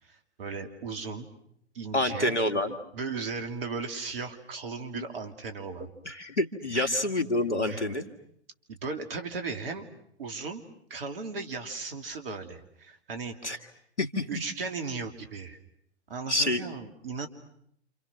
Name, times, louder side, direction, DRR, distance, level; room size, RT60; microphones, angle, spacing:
voice 1, 0.0-1.3 1.7-2.4 2.9-5.9 6.7-7.0 7.7-7.8 8.7-9.9 10.2-10.6 10.9-13.6 14.3-15.6 16.1-17.3, right 4 dB, 55° right, 6 dB, 3.0 m, -36 dB
voice 2, 1.9-2.8 4.9-5.0 6.0-8.0 13.4-13.6 14.0-14.3 16.3-16.6, left 1 dB, 85° left, 6 dB, 2.4 m, -27 dB
28.5 x 28.5 x 6.2 m, 0.71 s
figure-of-eight pair, 110°, 33 cm